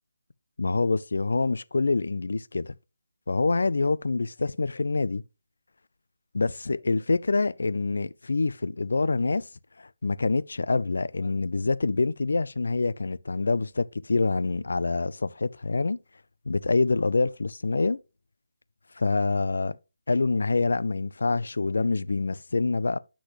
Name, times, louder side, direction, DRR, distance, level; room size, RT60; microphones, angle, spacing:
voice 1, 0.6-2.7 3.3-5.2 6.3-9.5 10.0-16.0 16.5-18.0 19.0-19.8 20.1-23.0, left 3 dB, 70° left, 0.5 m, -26 dB
9.9 x 6.2 x 3.1 m
figure-of-eight pair, 165°, 0 cm